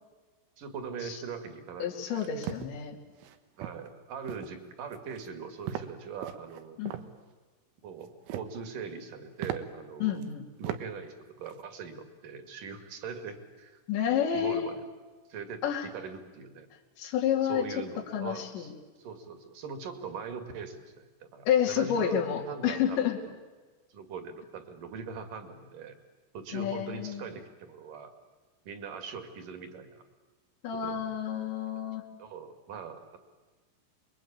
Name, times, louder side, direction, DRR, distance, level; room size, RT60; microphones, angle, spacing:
voice 1, 0.6-2.3 3.6-6.8 7.8-10.2 10.6-11.1 11.4-13.8 14.3-14.8 15.3-16.7 17.4-18.7 19.0-22.2 22.5-23.1 23.9-26.0 26.3-28.1 28.6-30.0 30.8-31.0 32.2-33.2, right 5 dB, 50° right, 8 dB, 3.3 m, -41 dB
voice 2, 1.8-3.0 6.8-6.9 10.0-10.5 13.9-14.8 15.6-15.9 17.0-17.7 18.1-18.7 21.5-23.2 26.5-27.3 30.6-32.0, left 9 dB, 70° left, 1 dB, 4.7 m, -29 dB
sound 1, 2.1-2.7 3.2-3.4 3.6-3.9 4.3-4.6 4.9-5.3 5.7-5.9 6.2-7.1 8.0-8.6 9.0-9.1 9.4-9.6 10.2-10.3 10.6-10.8 11.2-11.6, right 11 dB, 85° right, 3.8 m, -38 dB
27.5 x 23.0 x 8.8 m, 1.3 s
omnidirectional pair, 5.5 m